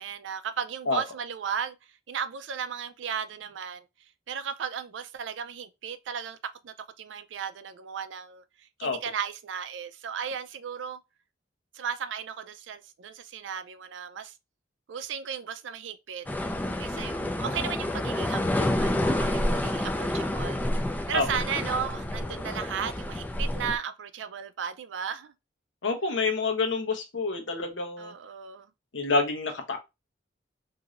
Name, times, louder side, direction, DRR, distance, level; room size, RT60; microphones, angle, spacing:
voice 1, 0.0-6.4 6.6-11.0 11.7-14.4 14.9-16.3 16.8-20.6 21.1-25.3 28.0-28.7, right 7 dB, 75° right, 0.4 m, -35 dB
sound 1, 16.3-23.8, left 1 dB, 10° left, 0.3 m, -29 dB
voice 2, 25.8-28.1 28.9-29.8, left 3 dB, 85° left, 0.8 m, -27 dB
3.0 x 2.7 x 2.4 m
head